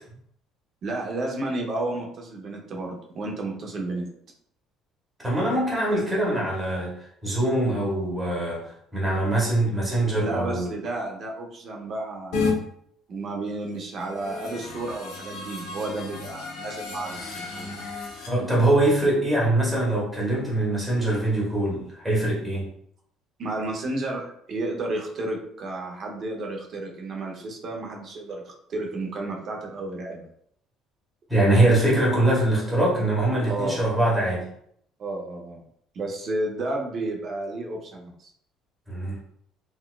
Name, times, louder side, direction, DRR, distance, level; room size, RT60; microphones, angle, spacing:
voice 1, 0.8-4.1 10.2-12.6 13.1-17.7 23.4-30.3 33.5-33.8 35.0-35.6 35.9-38.3, right 2 dB, 40° right, 0 dB, 0.7 m, -32 dB
voice 2, 5.2-6.9 7.2-10.7 18.3-22.7 31.3-34.4 38.9-39.2, right 1 dB, 5° right, -5 dB, 0.9 m, -23 dB
sound 1, 12.3-12.5 13.9-18.3, left 4 dB, 85° left, 1.0 m, -32 dB
3.9 x 2.4 x 2.3 m, 0.67 s
cardioid pair, 155°, 0 cm